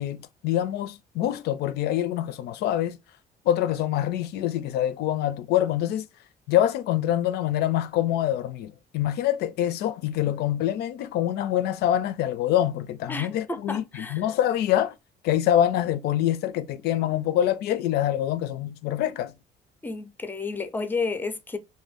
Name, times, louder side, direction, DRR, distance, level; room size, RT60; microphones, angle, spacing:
voice 1, 0.0-3.0 3.4-6.1 6.5-14.9 15.2-19.3, left 11 dB, 75° left, 0.4 m, -25 dB
voice 2, 13.1-14.2 19.8-21.6, left 4 dB, 10° left, 0.4 m, -31 dB
2.6 x 2.2 x 3.4 m
cardioid pair, 110°, 17 cm